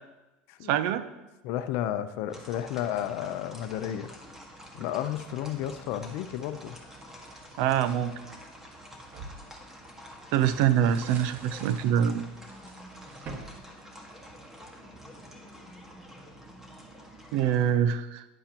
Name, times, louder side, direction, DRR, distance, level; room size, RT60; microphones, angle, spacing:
voice 1, 0.7-1.0 7.6-8.1 10.3-12.3 17.3-18.2, right 9 dB, 65° right, 12 dB, 0.7 m, -24 dB
voice 2, 1.4-4.1 4.7-6.8, left 11 dB, 60° left, 10 dB, 0.7 m, -32 dB
sound 1, 2.3-17.7, equal, 10° right, 1.7 m, -48 dB
sound 2, 6.2-8.0 8.6-14.6, right 3 dB, 40° right, 1.5 m, -48 dB
11.5 x 10.0 x 3.0 m, 1.0 s
supercardioid pair, 125°, 5 cm